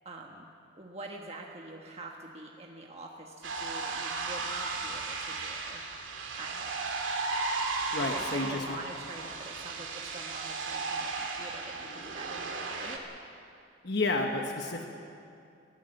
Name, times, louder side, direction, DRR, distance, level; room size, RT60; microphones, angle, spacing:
voice 1, 0.0-0.5 0.8-5.8 6.4-6.9 8.0-13.0, right 2 dB, 30° right, 0 dB, 1.3 m, -45 dB
sound 1, 3.4-13.0, right 3 dB, 80° right, 2.3 m, -35 dB
voice 2, 7.9-8.8 13.8-14.9, left 2 dB, 55° left, 3 dB, 1.2 m, -31 dB
22.0 x 16.0 x 7.9 m, 2.6 s
head